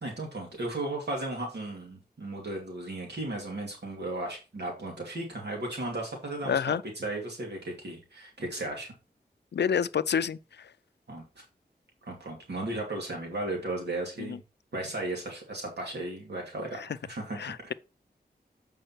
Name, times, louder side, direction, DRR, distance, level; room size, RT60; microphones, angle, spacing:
voice 1, 0.0-8.9 11.1-11.4 12.0-14.4 14.7-17.7, right 2 dB, 80° right, 2.5 m, -35 dB
voice 2, 6.5-6.8 9.5-10.4 14.2-14.4 17.4-17.7, left 7 dB, 85° left, 0.5 m, -28 dB
7.8 x 5.3 x 4.4 m
wide cardioid pair, 90°, 17 cm